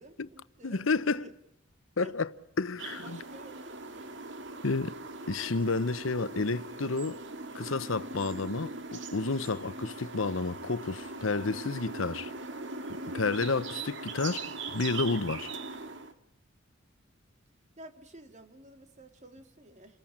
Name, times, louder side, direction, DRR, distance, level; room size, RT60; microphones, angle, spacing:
voice 1, 0.0-1.3 2.0-2.2 3.0-4.1 17.8-20.0, right 1 dB, 35° right, 2.6 m, -51 dB
voice 2, 0.6-1.3 2.0-2.3 2.6-3.2 4.6-4.9 5.3-7.2 7.5-12.3 13.1-15.5, left 3 dB, 90° left, 0.9 m, -30 dB
sound 1, 2.8-16.1, right 3 dB, 65° right, 2.2 m, -40 dB
29.0 x 20.5 x 8.8 m
head